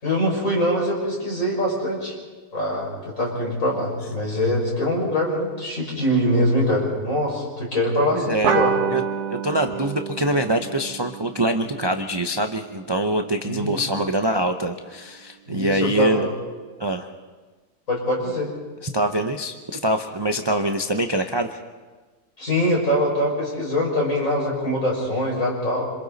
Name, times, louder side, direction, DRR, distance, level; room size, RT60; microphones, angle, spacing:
voice 1, 0.0-2.1 2.5-8.8 13.4-13.8 15.5-16.3 17.9-18.5 22.4-25.9, equal, 50° left, -3 dB, 6.4 m, -23 dB
voice 2, 8.1-8.6 8.9-9.0 9.3-16.3 16.8-17.1 18.8-21.5, right 1 dB, 25° right, 5 dB, 0.5 m, -24 dB
sound 1, 8.4-13.4, right 7 dB, 70° right, 1.6 m, -28 dB
27.0 x 26.5 x 4.1 m, 1.3 s
omnidirectional pair, 1.8 m